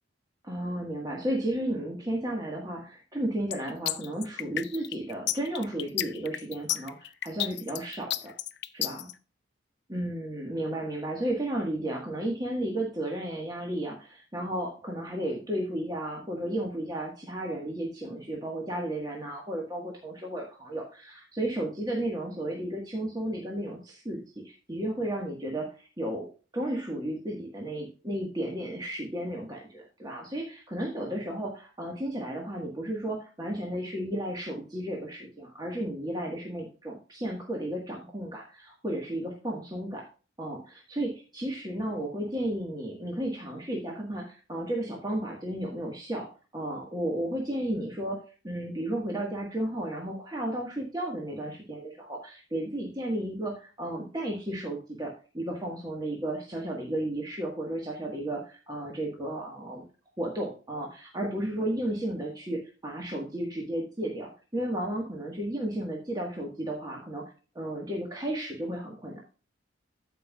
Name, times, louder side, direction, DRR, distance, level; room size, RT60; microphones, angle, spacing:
voice 1, 0.4-8.3 8.7-9.1 9.9-26.3 26.5-40.0 40.4-46.3 46.5-48.2 48.4-59.8 60.2-67.2 67.5-69.2, right 1 dB, 20° right, -1 dB, 1.5 m, -33 dB
sound 1, 3.5-9.1, left 13 dB, 55° left, 0.5 m, -31 dB
14.5 x 5.3 x 2.3 m, 0.34 s
head